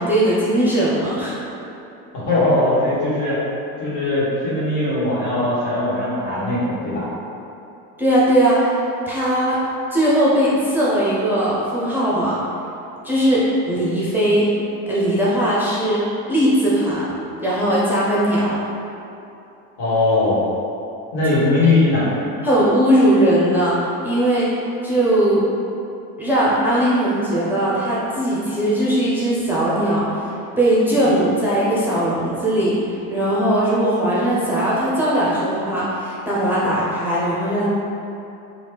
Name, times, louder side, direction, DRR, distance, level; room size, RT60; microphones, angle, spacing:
voice 1, 0.0-1.3 8.0-9.6 9.9-12.4 13.0-14.5 14.9-17.1 17.4-18.6 22.4-24.5 24.8-25.5 26.2-32.8 33.1-37.7, right 1 dB, 5° right, -8 dB, 0.6 m, -19 dB
voice 2, 2.1-3.4 3.8-7.1 19.8-20.4 21.1-22.1, left 2 dB, 65° left, -9 dB, 1.5 m, -19 dB
3.0 x 2.4 x 3.4 m, 2.8 s
supercardioid pair, 95°, 41 cm